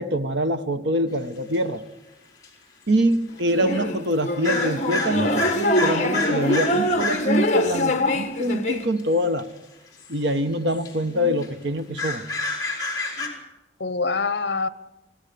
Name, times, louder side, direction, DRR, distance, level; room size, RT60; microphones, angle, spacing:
voice 1, 0.0-1.8 2.9-9.5 10.1-12.3, equal, 70° right, 1.2 m, -24 dB
sound 1, 1.5-1.6 2.4-2.5 3.4-3.5 4.4-7.4 9.0-9.4 10.0-10.2 10.5-10.9 11.4-11.5 11.8-13.3, left 2 dB, 20° left, 3.9 m, -29 dB
sound 2, 3.5-8.8, left 1 dB, 40° left, 1.6 m, -23 dB
voice 2, 13.8-14.7, left 4 dB, 65° left, 1.0 m, -26 dB
24.5 x 16.5 x 6.9 m
head